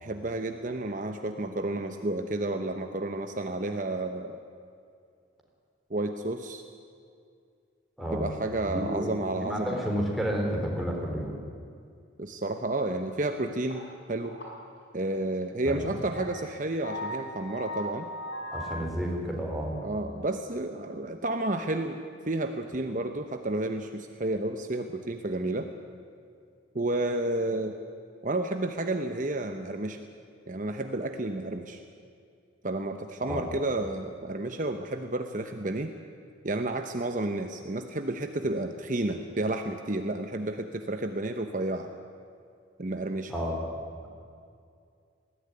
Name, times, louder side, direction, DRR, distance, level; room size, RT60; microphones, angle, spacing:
voice 1, 0.0-4.4 5.9-6.6 8.1-9.9 12.2-14.4 14.9-18.1 19.8-22.0 22.2-25.7 26.7-27.7 28.2-30.0 30.5-31.8 32.6-35.9 36.4-41.9 42.8-43.3, right 2 dB, 40° right, 6 dB, 0.9 m, -31 dB
voice 2, 8.7-11.4 15.6-15.9 18.5-19.8 33.2-33.4 43.3-43.6, equal, ahead, -2 dB, 3.9 m, -31 dB
sound 1, 13.7-13.9 14.2-14.6 15.0-15.1 15.8-15.9 16.1-18.8, equal, 65° left, 5.9 m, -38 dB
20.5 x 15.5 x 9.9 m, 2.3 s
head